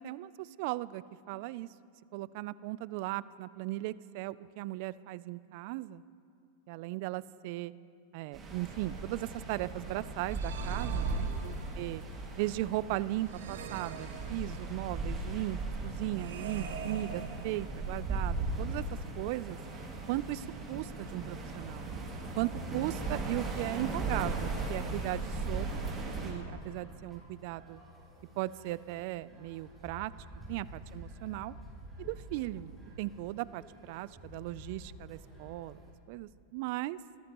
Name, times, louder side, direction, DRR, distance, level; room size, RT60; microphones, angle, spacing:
voice 1, 0.0-1.7 2.1-6.0 6.7-7.7 8.1-11.5 11.8-12.0 12.3-15.6 15.8-18.8 19.2-19.6 20.1-21.9 22.4-25.8 26.2-27.8 28.4-30.1 30.5-31.5 32.0-32.7 33.0-35.8 36.1-37.0, right 17 dB, 55° right, 18 dB, 0.3 m, -37 dB
sound 1, 8.3-26.3, right 3 dB, 25° right, 2.4 m, -37 dB
sound 2, 10.3-12.0 13.3-14.9 16.2-18.0, right 7 dB, 85° right, 1.1 m, -44 dB
sound 3, 21.6-35.9, equal, 5° right, 3.5 m, -50 dB
20.5 x 12.5 x 3.0 m, 2.5 s
hypercardioid pair, 130°, 0 cm